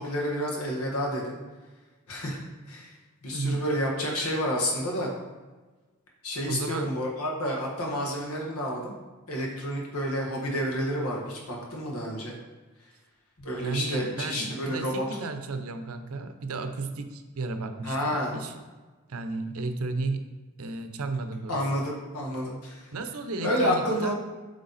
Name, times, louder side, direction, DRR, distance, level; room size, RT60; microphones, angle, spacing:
voice 1, 0.0-1.4 2.1-2.4 2.7-3.0 3.2-5.1 6.2-8.9 9.3-12.4 13.4-15.0 17.8-18.3 21.5-22.9 23.4-24.2, equal, 85° left, -1 dB, 1.5 m, -29 dB
voice 2, 3.3-3.6 6.5-6.9 13.6-18.5 19.1-20.3 20.6-21.6 22.9-24.1, right 3 dB, 75° right, 8 dB, 0.6 m, -33 dB
7.8 x 3.4 x 4.0 m, 1.3 s
head